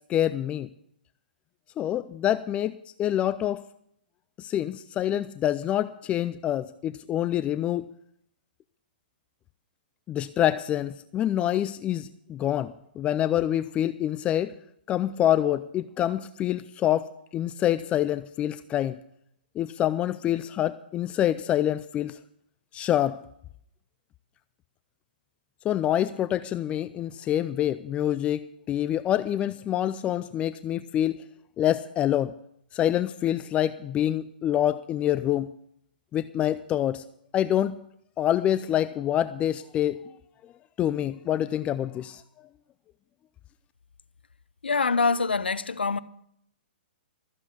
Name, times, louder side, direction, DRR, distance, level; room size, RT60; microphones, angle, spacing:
voice 1, 0.1-0.7 1.8-2.7 3.0-3.6 4.4-7.8 10.1-14.5 14.9-19.0 19.6-22.2 22.7-23.2 25.6-31.2 31.6-32.3 32.7-35.5 36.1-37.0 37.3-37.8 38.2-40.0 40.8-42.2, left 11 dB, 20° left, 0.4 m, -26 dB
voice 2, 44.6-46.0, left 4 dB, 85° left, 0.7 m, -24 dB
14.0 x 7.5 x 8.1 m
hypercardioid pair, 125°, 5 cm